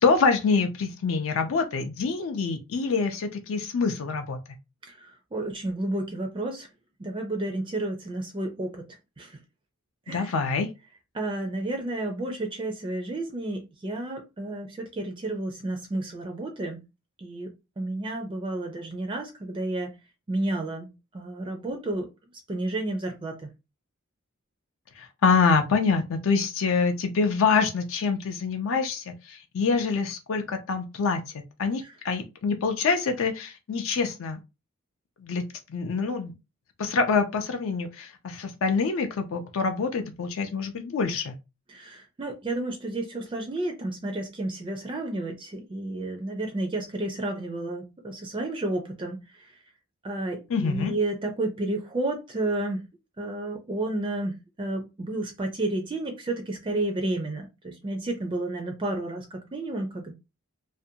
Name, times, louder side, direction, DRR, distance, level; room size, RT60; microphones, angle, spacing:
voice 1, 0.0-4.4 10.1-10.7 25.0-31.2 31.6-34.4 35.2-35.4 35.7-36.3 36.8-41.4 50.5-50.9, left 4 dB, 70° left, 0.4 m, -25 dB
voice 2, 4.9-6.7 7.0-8.8 9.2-9.3 10.1-10.3 11.1-16.8 17.2-20.0 20.3-22.1 22.5-23.3 41.7-49.2 50.0-52.8 53.2-60.1, right 2 dB, 25° right, 0.4 m, -31 dB
2.5 x 2.1 x 2.7 m
head